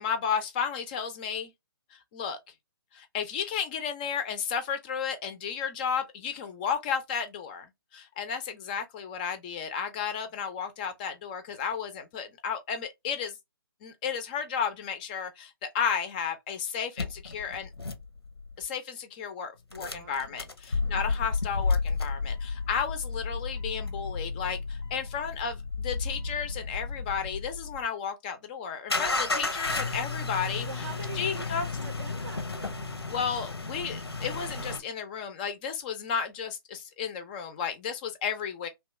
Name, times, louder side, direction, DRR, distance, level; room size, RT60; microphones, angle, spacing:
voice 1, 0.0-1.5 1.9-2.4 2.9-13.4 13.8-17.7 18.6-30.9 31.1-31.7 33.1-38.7, left 7 dB, 20° left, 0.4 m, -33 dB
sound 1, 17.0-18.6 19.7-27.8 28.9-34.8, left 4 dB, 90° left, 0.6 m, -32 dB
voice 2, 19.7-20.5 20.7-21.2 30.6-32.9, right 6 dB, 60° right, 0.5 m, -45 dB
2.9 x 2.2 x 3.0 m
figure-of-eight pair, 135°, 13 cm